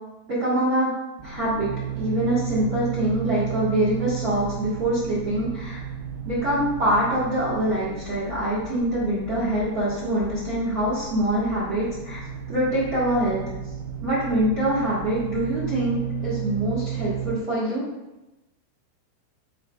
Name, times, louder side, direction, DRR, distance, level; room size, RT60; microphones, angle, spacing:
voice 1, 0.3-0.9 1.2-5.8 6.2-12.2 12.5-13.4 14.0-17.8, right 1 dB, 55° right, -10 dB, 1.0 m, -24 dB
sound 1, 1.2-17.4, right 8 dB, 85° right, 2.9 m, -34 dB
6.2 x 5.3 x 3.3 m, 1.0 s
omnidirectional pair, 5.3 m